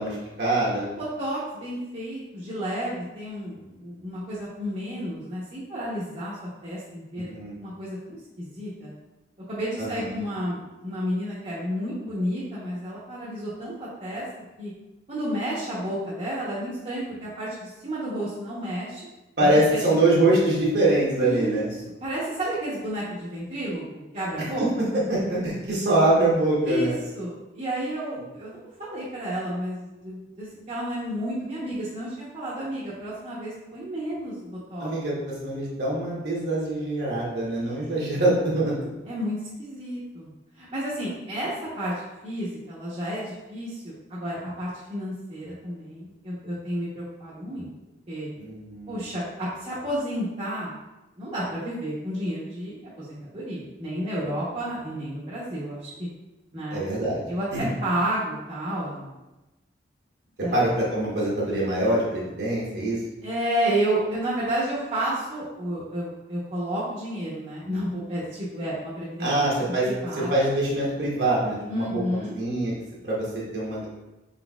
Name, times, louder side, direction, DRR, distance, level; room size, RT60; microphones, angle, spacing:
voice 1, 0.0-0.9 7.2-7.5 9.8-10.1 19.4-21.7 24.4-27.0 34.8-38.7 48.4-49.0 56.7-57.2 57.5-57.7 60.5-63.0 69.2-69.9 70.3-72.7 73.0-73.9, right 1 dB, 65° right, -6 dB, 1.1 m, -24 dB
voice 2, 1.0-7.3 7.6-8.9 9.5-14.2 14.6-14.7 15.1-19.0 19.4-19.8 21.2-21.6 22.0-24.6 26.6-26.9 27.1-34.9 37.5-38.2 39.0-40.3 40.6-41.9 42.2-47.7 48.1-48.3 48.9-50.8 51.2-56.1 56.5-56.8 57.3-59.1 60.4-60.6 63.2-69.3 69.9-70.4 71.7-72.3, right 1 dB, 35° right, -9 dB, 0.8 m, -31 dB
4.5 x 4.0 x 2.3 m, 1.0 s
head